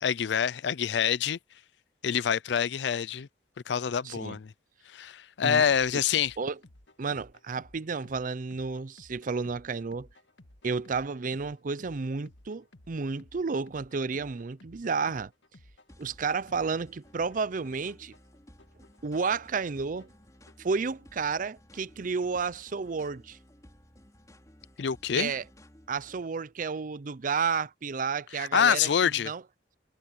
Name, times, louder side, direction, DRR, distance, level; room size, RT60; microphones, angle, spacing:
voice 1, 0.0-1.4 2.0-3.3 3.7-4.5 4.9-6.4 24.8-25.3 28.3-29.3, left 8 dB, 70° left, 0.4 m, -26 dB
voice 2, 4.0-4.4 5.4-5.6 5.9-6.0 6.4-6.6 7.0-10.1 10.6-15.3 16.0-18.1 19.0-20.1 20.6-23.4 25.1-25.4 25.9-28.9 29.2-29.4, right 5 dB, 45° right, 0.5 m, -31 dB
sound 1, 6.0-20.7, left 1 dB, 90° left, 1.9 m, -57 dB
sound 2, 15.9-26.2, equal, 20° left, 4.7 m, -56 dB
head